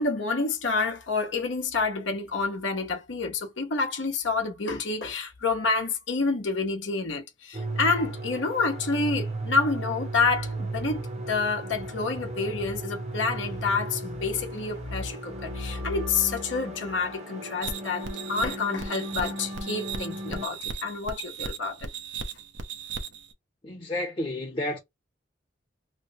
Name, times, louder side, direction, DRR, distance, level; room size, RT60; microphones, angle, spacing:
voice 1, 0.0-21.9, left 4 dB, 85° left, 0.8 m, -28 dB
sound 1, 7.5-20.5, right 2 dB, 35° right, 0.8 m, -36 dB
sound 2, 17.6-23.3, right 5 dB, 80° right, 0.7 m, -37 dB
voice 2, 23.6-24.8, left 1 dB, 30° left, 0.7 m, -31 dB
3.1 x 2.0 x 3.9 m
head